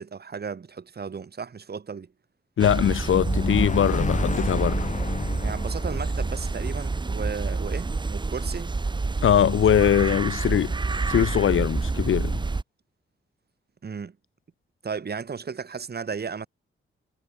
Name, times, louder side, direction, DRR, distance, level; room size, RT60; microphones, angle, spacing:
voice 1, 0.0-2.1 5.4-8.7 13.8-14.2 14.8-16.5, right 5 dB, 50° right, 3.6 m, -34 dB
voice 2, 2.6-4.9 9.2-10.7 11.1-12.4, left 9 dB, 75° left, 0.9 m, -21 dB
sound 1, 2.6-12.6, right 3 dB, 20° right, 0.9 m, -28 dB
sound 2, 3.1-7.7, left 4 dB, 35° left, 1.6 m, -32 dB
wide cardioid pair, 105°, 21 cm